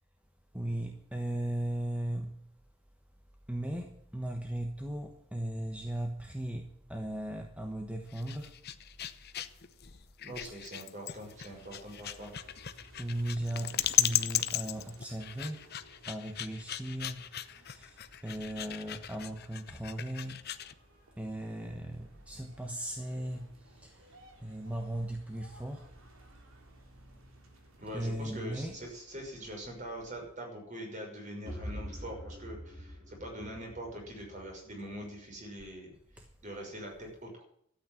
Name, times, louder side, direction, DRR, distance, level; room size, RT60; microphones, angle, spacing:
voice 1, 0.5-2.4 3.5-8.5 10.4-10.7 13.0-15.7 16.0-20.5 21.2-25.9 27.9-28.8 36.2-36.3, right 1 dB, 5° right, 1.2 m, -37 dB
sound 1, 8.0-20.7, left 11 dB, 50° left, 0.8 m, -36 dB
voice 2, 10.2-12.3 27.8-35.9 36.4-37.4, equal, 35° right, 6.2 m, -43 dB
sound 2, 11.1-30.4, right 1 dB, 75° right, 3.5 m, -59 dB
sound 3, 31.5-35.3, equal, 55° right, 7.8 m, -45 dB
13.0 x 8.8 x 9.2 m
head